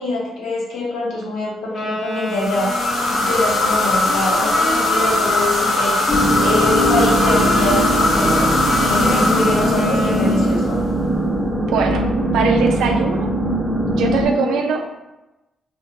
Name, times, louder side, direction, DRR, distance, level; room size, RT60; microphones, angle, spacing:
voice 1, 0.0-2.7 3.1-6.0 6.4-10.8 14.2-14.6, left 2 dB, 85° left, -4 dB, 0.8 m, -24 dB
Wind instrument woodwind instrument, 1.7-10.8, left 2 dB, 20° left, 0.8 m, -28 dB
sound 1, 2.3-10.8, left 2 dB, 60° left, 0.5 m, -20 dB
sound 2, 6.1-14.3, right 1 dB, ahead, 0.5 m, -20 dB
voice 2, 11.6-12.0 12.3-13.3 13.9-15.0, right 5 dB, 85° right, 3 dB, 0.3 m, -21 dB
2.4 x 2.1 x 2.6 m, 0.99 s
cardioid pair, 160°, 0 cm